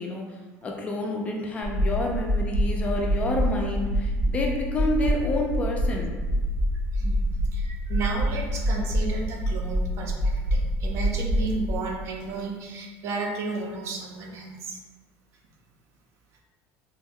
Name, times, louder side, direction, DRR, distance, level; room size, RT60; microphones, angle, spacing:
voice 1, 0.0-6.1, left 1 dB, 20° left, 0 dB, 0.4 m, -29 dB
sound 1, 1.6-11.8, equal, 85° right, 1.1 m, -26 dB
voice 2, 6.9-14.8, right 3 dB, 45° right, 1 dB, 0.5 m, -33 dB
3.4 x 2.2 x 3.5 m, 1.3 s
cardioid pair, 155°, 6 cm